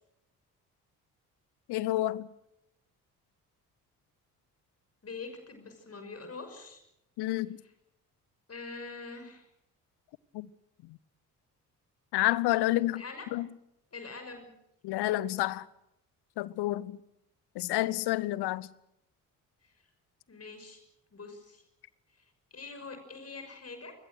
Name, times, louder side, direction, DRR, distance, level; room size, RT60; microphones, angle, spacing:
voice 1, 1.7-2.3 7.2-7.6 10.3-10.5 12.1-13.0 13.3-13.5 14.8-15.7 16.4-17.0 17.5-18.7, left 16 dB, 55° left, 1.0 m, -29 dB
voice 2, 5.0-6.8 8.5-9.5 12.9-13.3 13.9-14.5 19.6-19.7 20.3-20.8 21.1-21.6 22.2-22.3 22.5-23.9, left 4 dB, 30° left, 6.1 m, -44 dB
27.5 x 21.0 x 6.5 m
figure-of-eight pair, 45°, 47 cm